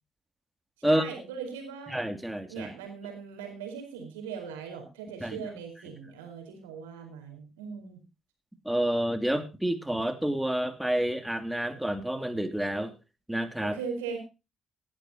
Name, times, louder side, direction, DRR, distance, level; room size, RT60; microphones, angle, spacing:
voice 1, 0.8-2.0 2.5-8.0 13.6-14.2, right 6 dB, 90° right, 4 dB, 4.5 m, -39 dB
voice 2, 1.9-2.7 5.2-5.4 8.6-12.9 13.3-13.8, right 1 dB, 5° right, 8 dB, 2.9 m, -29 dB
18.5 x 11.5 x 2.9 m, 0.29 s
hypercardioid pair, 50°, 0 cm